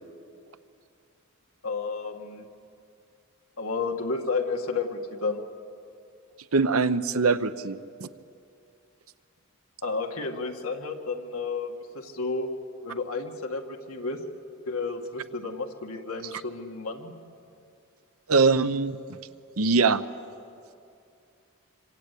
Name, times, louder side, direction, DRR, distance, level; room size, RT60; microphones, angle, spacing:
voice 1, 1.6-2.4 3.6-5.4 9.8-12.5 12.8-14.2 14.7-17.1, left 4 dB, 80° left, 2 dB, 2.1 m, -31 dB
voice 2, 6.5-8.1 18.3-19.0 19.6-20.0, right 4 dB, 80° right, 12 dB, 0.8 m, -22 dB
26.5 x 25.5 x 8.4 m, 2.5 s
head